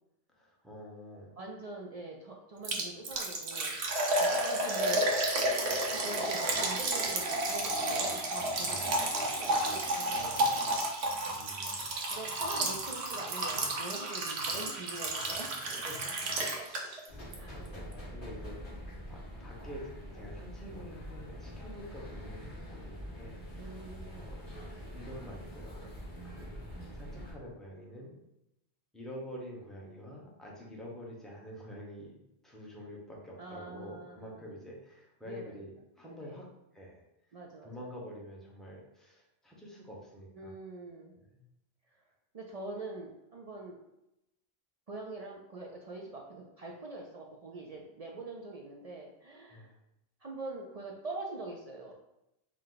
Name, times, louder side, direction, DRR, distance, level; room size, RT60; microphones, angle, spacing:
voice 1, 0.3-1.3 8.6-9.0 11.3-11.9 15.6-16.3 16.6-17.1 17.5-23.9 24.2-24.4 24.9-25.9 26.2-26.5 26.9-28.1 28.9-36.5 36.7-37.0 37.6-40.5 41.2-41.4 49.5-49.7, equal, ahead, -4 dB, 0.8 m, -47 dB
voice 2, 1.4-3.7 4.1-5.1 5.4-10.8 11.5-11.6 12.1-15.6 16.4-16.7 17.4-17.7 23.6-24.3 33.4-34.4 35.2-35.6 36.0-36.4 37.3-37.7 40.4-41.1 41.9-42.0 42.3-43.8 44.9-49.7 50.2-51.9, right 2 dB, 55° right, -1 dB, 0.4 m, -44 dB
Liquid, 2.6-17.1 17.3-17.4 17.9-18.0, right 1 dB, 75° right, 1.0 m, -31 dB
sound 1, 17.1-27.3, equal, 50° left, 1.5 m, -45 dB
4.7 x 2.2 x 3.8 m, 0.87 s
omnidirectional pair, 1.1 m